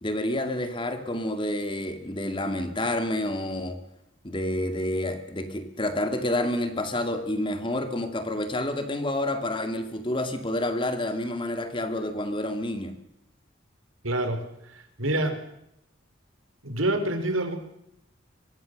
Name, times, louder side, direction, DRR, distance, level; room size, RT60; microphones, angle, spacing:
voice 1, 0.0-3.8 4.2-12.9, left 1 dB, 25° left, 8 dB, 2.2 m, -29 dB
voice 2, 14.0-15.4 16.6-17.6, right 1 dB, 80° right, 8 dB, 4.2 m, -27 dB
24.0 x 23.5 x 6.6 m, 0.79 s
head